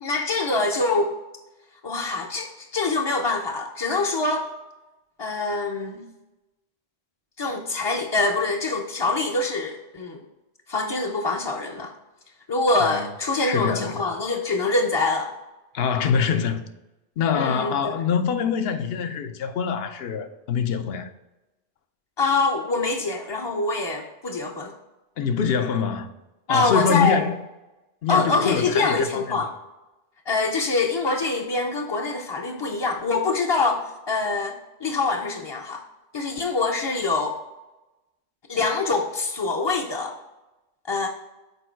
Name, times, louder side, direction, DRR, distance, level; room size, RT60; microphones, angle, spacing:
voice 1, 0.0-1.1 1.8-4.5 5.2-6.1 7.4-10.2 10.7-11.9 12.5-15.3 17.3-18.0 22.2-24.8 26.5-27.2 28.1-29.5 30.3-35.8 36.1-37.4 38.5-40.2 40.9-41.1, left 3 dB, 35° left, 0.5 m, -24 dB
voice 2, 13.4-14.0 15.7-16.6 17.2-21.1 25.2-26.1 26.5-27.3 28.0-29.3, left 6 dB, 70° left, 0.9 m, -24 dB
6.9 x 4.5 x 4.5 m
omnidirectional pair, 1.1 m